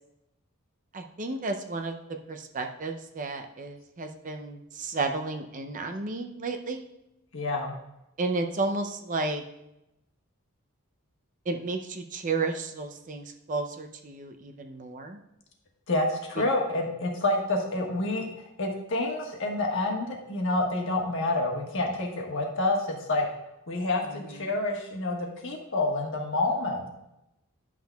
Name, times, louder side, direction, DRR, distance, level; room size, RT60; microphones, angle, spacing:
voice 1, 0.9-2.0 2.3-6.9 8.2-9.4 11.5-15.2 16.4-16.5 24.1-24.4, right 3 dB, 35° right, 5 dB, 0.5 m, -32 dB
voice 2, 7.3-7.7 15.9-18.3 18.6-23.3 23.7-26.9, left 2 dB, 60° left, 0 dB, 1.4 m, -28 dB
10.5 x 6.1 x 2.3 m, 0.88 s
head